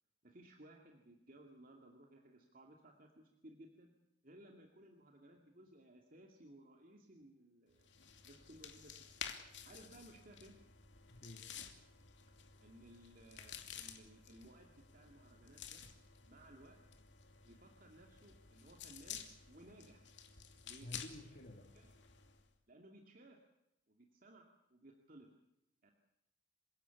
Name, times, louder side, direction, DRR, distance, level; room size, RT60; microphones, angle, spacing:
voice 1, 0.2-3.9 4.2-7.9 8.2-10.6 12.6-15.8 16.2-16.8 17.4-20.1 20.6-20.9 21.7-21.9 22.7-23.4 23.9-25.3 25.8-25.9, right 1 dB, 45° right, 2 dB, 2.4 m, -60 dB
sound 1, 7.8-22.5, left 8 dB, 65° left, 2.6 m, -53 dB
voice 2, 11.1-11.6 18.5-18.7 20.8-21.7, left 1 dB, 50° left, 1 dB, 2.4 m, -52 dB
27.5 x 17.0 x 8.4 m, 0.84 s
head